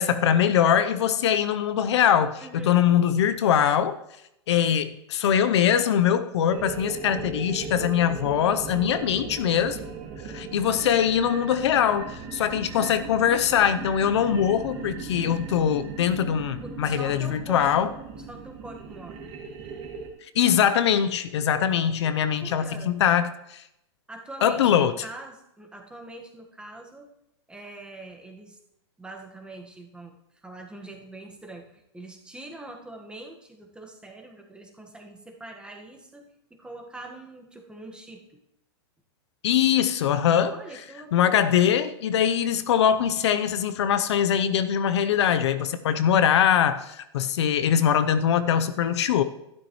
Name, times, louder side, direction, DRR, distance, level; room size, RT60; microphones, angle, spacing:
voice 1, 0.0-4.0 4.5-9.8 10.3-17.9 20.3-23.3 24.4-24.9 39.4-40.6 41.1-49.2, left 9 dB, 70° left, 11 dB, 0.7 m, -22 dB
voice 2, 2.4-2.8 16.6-19.3 22.0-23.2 24.1-27.1 27.5-28.6 29.0-38.2 40.5-41.6, right 2 dB, 5° right, 1 dB, 1.5 m, -43 dB
sound 1, 6.5-20.1, right 5 dB, 40° right, 2.3 m, -38 dB
12.5 x 12.0 x 3.1 m, 0.83 s
hypercardioid pair, 130°, 15 cm